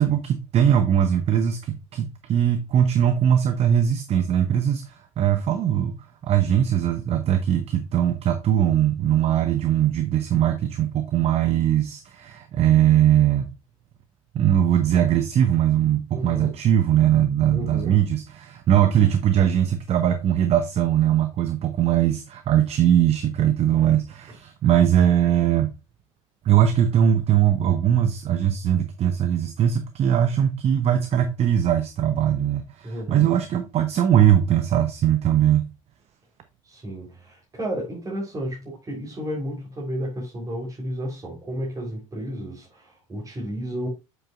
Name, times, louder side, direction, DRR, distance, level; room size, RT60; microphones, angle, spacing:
voice 1, 0.0-6.0 6.2-13.5 14.3-25.7 26.4-35.7, right 10 dB, 40° right, 0.9 m, -20 dB
voice 2, 16.1-16.5 17.5-18.0 32.8-33.3 36.6-43.9, equal, 20° right, 3.8 m, -32 dB
7.9 x 7.7 x 2.5 m
figure-of-eight pair, 70°, 17 cm